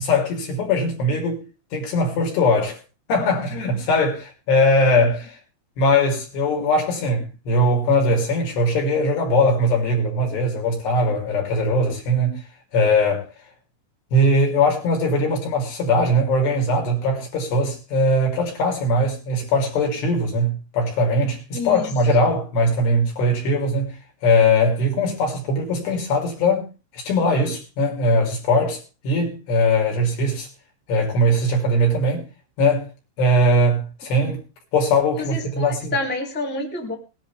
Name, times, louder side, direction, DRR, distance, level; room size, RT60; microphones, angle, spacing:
voice 1, 0.0-1.4 1.7-2.8 3.1-5.4 5.8-12.4 12.7-13.3 14.1-23.9 24.2-26.7 26.9-30.5 30.9-32.3 32.6-32.9 33.2-34.4 34.7-36.0, left 1 dB, 75° left, 5.6 m, -20 dB
voice 2, 21.5-21.8 35.2-37.0, left 2 dB, 5° left, 1.9 m, -28 dB
20.5 x 10.5 x 3.5 m
omnidirectional pair, 4.8 m